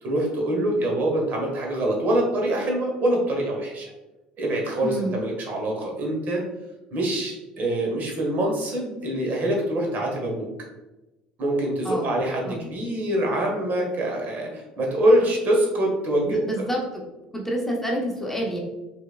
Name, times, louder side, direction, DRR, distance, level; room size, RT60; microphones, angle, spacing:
voice 1, 0.0-3.9 4.4-6.4 6.9-10.5 11.4-16.5, right 1 dB, 45° right, 0 dB, 1.5 m, -24 dB
voice 2, 4.8-5.2 11.8-12.2 12.4-12.6 16.2-17.0 17.3-18.6, right 1 dB, 5° left, -2 dB, 1.1 m, -28 dB
6.3 x 3.5 x 2.4 m, 1.0 s
figure-of-eight pair, 60°, 4 cm